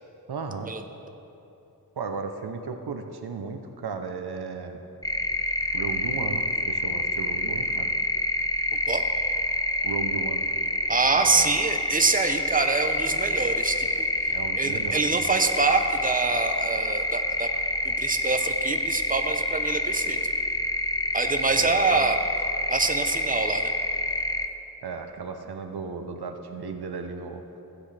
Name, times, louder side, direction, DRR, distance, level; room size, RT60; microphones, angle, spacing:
voice 1, 0.3-0.7 2.0-4.8 5.7-7.9 9.8-10.5 11.1-11.6 14.3-15.3 21.5-22.1 24.8-27.6, right 5 dB, 80° right, 6 dB, 0.8 m, -35 dB
sound 1, 5.0-24.5, left 1 dB, 10° left, 0.5 m, -27 dB
voice 2, 10.9-17.5 17.8-20.2 21.1-22.2 22.7-23.7, right 4 dB, 20° right, 6 dB, 0.8 m, -25 dB
16.0 x 8.0 x 3.4 m, 2.9 s
cardioid pair, 45°, 38 cm